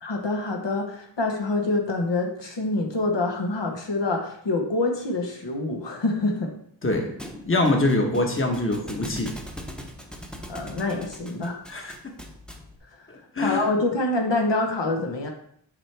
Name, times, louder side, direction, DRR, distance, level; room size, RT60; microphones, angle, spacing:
voice 1, 0.0-6.5 10.5-11.6 13.4-15.3, left 2 dB, 65° left, 2 dB, 1.0 m, -26 dB
Thump thud, 7.2-12.8, equal, ahead, 0.8 m, -41 dB
voice 2, 7.4-9.3 11.7-11.9 13.1-13.6, left 2 dB, 25° left, 2 dB, 1.1 m, -24 dB
7.2 x 4.7 x 3.3 m, 0.68 s
wide cardioid pair, 85°, 46 cm